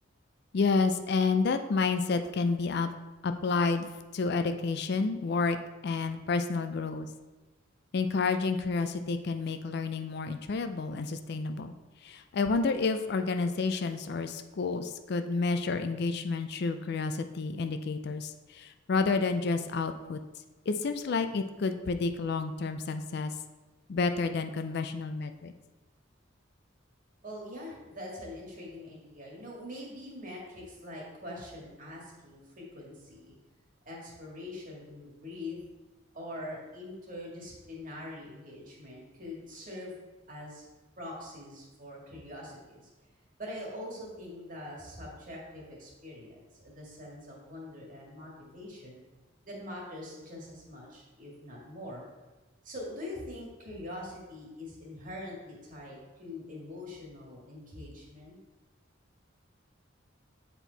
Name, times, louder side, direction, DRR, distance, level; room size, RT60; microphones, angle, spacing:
voice 1, 0.5-2.9 3.2-3.9 4.1-5.6 5.8-7.1 7.9-11.7 12.0-20.2 20.7-23.3 23.9-25.5, left 4 dB, 55° left, 9 dB, 0.4 m, -30 dB
voice 2, 27.2-33.3 33.9-35.6 36.1-40.0 40.3-40.6 41.0-42.9 43.4-49.0 49.4-52.0 52.6-58.4, left 1 dB, 45° right, -3 dB, 1.9 m, -43 dB
8.1 x 4.5 x 4.0 m, 1.2 s
head